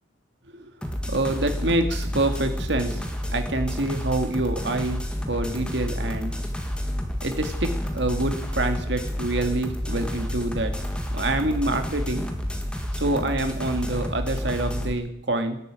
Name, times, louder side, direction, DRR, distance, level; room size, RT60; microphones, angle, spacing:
sound 1, 0.8-14.9, equal, 5° left, 1.6 m, -30 dB
voice 1, 1.1-3.0 3.3-5.0 5.3-6.3 7.2-10.7 11.1-12.2 12.9-15.6, right 2 dB, 60° right, 7 dB, 2.0 m, -26 dB
sound 2, 6.5-12.6, equal, 55° left, 7.2 m, -42 dB
18.0 x 8.4 x 8.8 m, 0.77 s
head